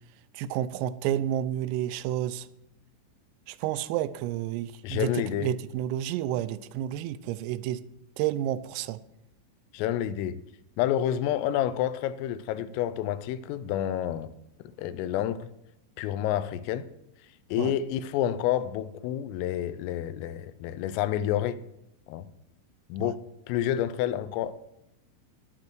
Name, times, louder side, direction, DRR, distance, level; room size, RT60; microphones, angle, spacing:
voice 1, 0.4-2.5 3.5-7.8 8.2-9.0 17.6-17.7 23.0-23.1, right 12 dB, 90° right, 3.3 m, -30 dB
voice 2, 4.8-5.5 9.7-10.4 10.8-14.3 14.8-15.5 16.0-16.9 17.5-21.6 22.1-22.3 22.9-24.5, left 11 dB, 85° left, 3.2 m, -29 dB
13.5 x 9.8 x 4.6 m
omnidirectional pair, 5.9 m